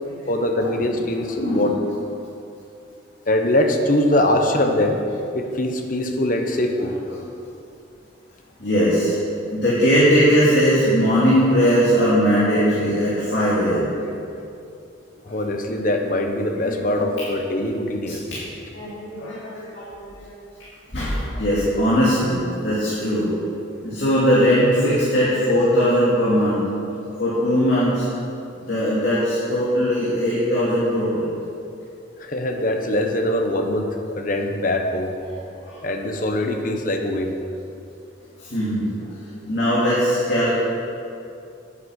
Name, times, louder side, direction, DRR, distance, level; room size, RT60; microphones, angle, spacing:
voice 1, 0.3-1.8 3.2-5.0 5.3-7.0 15.3-18.2 32.2-35.2 35.8-37.3, left 1 dB, 45° left, 4 dB, 1.0 m, -22 dB
voice 2, 1.4-1.7 7.1-7.2 8.6-9.1 9.5-14.1 15.3-15.4 16.6-17.1 18.1-18.4 18.7-20.3 20.9-23.3 23.8-26.6 27.2-28.1 28.6-31.3 35.3-35.8 38.4-40.5, equal, 60° left, -9 dB, 2.4 m, -20 dB
9.5 x 9.3 x 6.4 m, 2.6 s
head